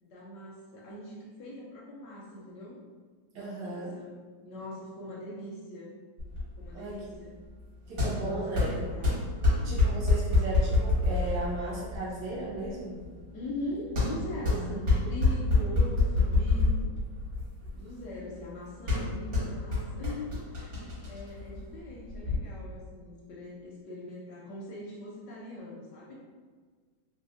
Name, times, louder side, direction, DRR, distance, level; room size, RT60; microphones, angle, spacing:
voice 1, 0.0-2.8 3.3-4.1 4.4-6.0 6.6-7.4 8.0-9.2 9.5-9.8 13.3-17.0 17.7-26.1, left 1 dB, 75° left, -4 dB, 1.0 m, -41 dB
voice 2, 3.3-3.9 6.7-7.0 7.9-8.7 9.6-13.0 14.5-14.8, right 2 dB, 70° right, -6 dB, 1.3 m, -36 dB
sound 1, 6.2-22.4, left 3 dB, 50° right, 1.2 m, -28 dB
3.2 x 2.7 x 2.4 m, 1.5 s
omnidirectional pair, 2.3 m